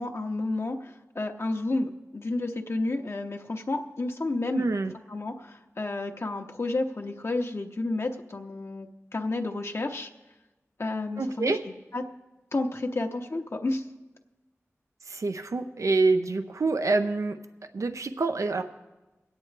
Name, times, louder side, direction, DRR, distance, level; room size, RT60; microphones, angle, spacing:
voice 1, 0.0-4.7 5.1-10.1 10.8-11.6 11.9-12.0 12.5-13.9, left 2 dB, 55° left, 2 dB, 0.8 m, -31 dB
voice 2, 4.5-4.9 11.2-11.6 15.1-17.4 17.7-18.6, right 3 dB, 80° right, 8 dB, 0.6 m, -26 dB
22.5 x 9.1 x 3.3 m, 1.1 s
wide cardioid pair, 50°, 5 cm